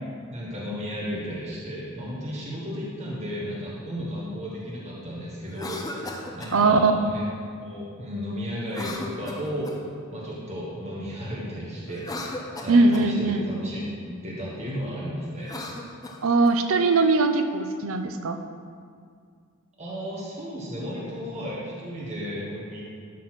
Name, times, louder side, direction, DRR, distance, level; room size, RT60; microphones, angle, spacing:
voice 1, 0.3-7.3 7.6-9.7 10.1-15.6 19.8-22.8, equal, 35° right, -6 dB, 1.5 m, -34 dB
Cough, 5.5-6.6 8.7-9.9 11.9-13.1 15.3-16.6, left 1 dB, 15° left, 0.7 m, -37 dB
voice 2, 6.5-6.9 12.7-13.4 16.2-18.4, right 3 dB, 70° right, 7 dB, 0.7 m, -20 dB
12.0 x 4.1 x 5.9 m, 2.1 s
head